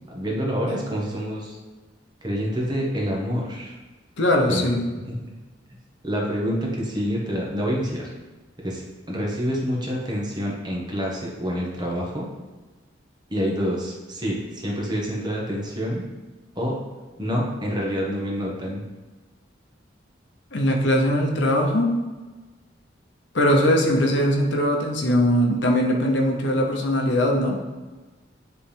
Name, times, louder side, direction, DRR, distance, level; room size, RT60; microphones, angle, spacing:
voice 1, 0.1-1.6 2.2-3.7 4.5-4.7 5.1-5.2 6.0-8.1 8.6-12.3 13.3-16.0 16.5-16.8 17.2-18.8, equal, 20° right, -3 dB, 1.1 m, -27 dB
voice 2, 4.2-4.9 20.5-21.9 23.3-27.6, equal, 65° left, 1 dB, 0.9 m, -21 dB
9.9 x 3.3 x 3.5 m, 1.3 s
head